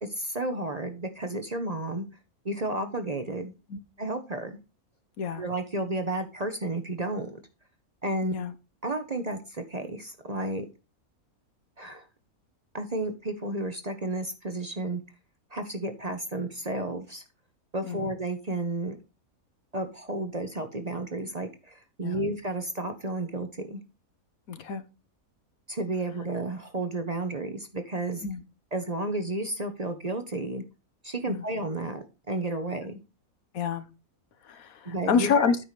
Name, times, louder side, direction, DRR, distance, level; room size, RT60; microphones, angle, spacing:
voice 1, 0.0-2.0 2.4-3.5 4.0-4.6 5.3-7.4 8.0-8.4 8.8-10.7 11.8-12.0 12.7-15.0 15.5-17.2 17.7-19.0 19.7-23.8 25.7-28.2 28.7-30.6 31.0-33.0 34.8-35.5, right 2 dB, 30° right, 0.9 m, -32 dB
voice 2, 24.5-24.8 28.2-28.4 31.3-31.4 33.5-33.8 34.4-35.6, left 6 dB, 75° left, 1.3 m, -28 dB
9.3 x 4.7 x 5.7 m
omnidirectional pair, 1.5 m